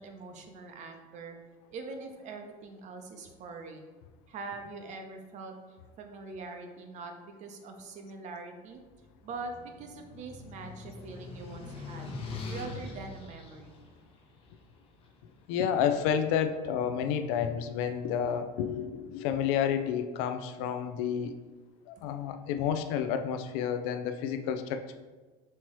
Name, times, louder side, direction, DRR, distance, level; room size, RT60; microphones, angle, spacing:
voice 1, 0.0-1.4 1.7-4.0 4.3-5.5 6.0-8.8 9.2-12.1 12.5-13.8 22.0-22.1, right 3 dB, 40° right, 5 dB, 0.7 m, -43 dB
sound 1, 8.9-15.2, left 3 dB, 30° left, 0.8 m, -43 dB
voice 2, 15.5-21.3 21.9-25.0, left 8 dB, 70° left, 8 dB, 0.5 m, -30 dB
5.6 x 3.0 x 3.0 m, 1.3 s
supercardioid pair, 120°, 18 cm